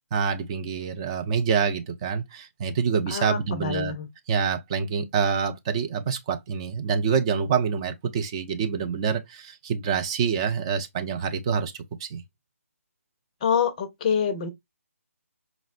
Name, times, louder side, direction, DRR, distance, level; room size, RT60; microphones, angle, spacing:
voice 1, 0.1-3.9 4.3-11.7 12.0-12.2, right 6 dB, 20° right, 0.4 m, -26 dB
voice 2, 3.1-4.1 13.4-14.5, left 7 dB, 25° left, 0.5 m, -26 dB
5.1 x 2.0 x 2.4 m
figure-of-eight pair, 145°, 8 cm